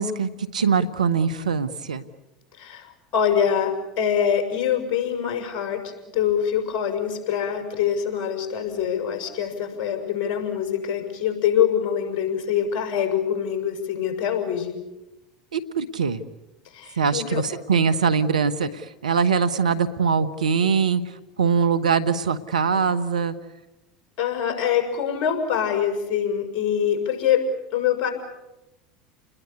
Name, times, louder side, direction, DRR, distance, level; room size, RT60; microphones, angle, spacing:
voice 1, 0.0-2.0 15.5-16.2 17.0-18.7 19.0-21.0 21.4-23.3, right 6 dB, 85° right, 14 dB, 1.3 m, -22 dB
voice 2, 2.6-14.8 16.7-17.5 24.2-28.1, left 8 dB, 55° left, 5 dB, 6.3 m, -24 dB
30.0 x 21.0 x 8.4 m, 0.99 s
hypercardioid pair, 80°, 4 cm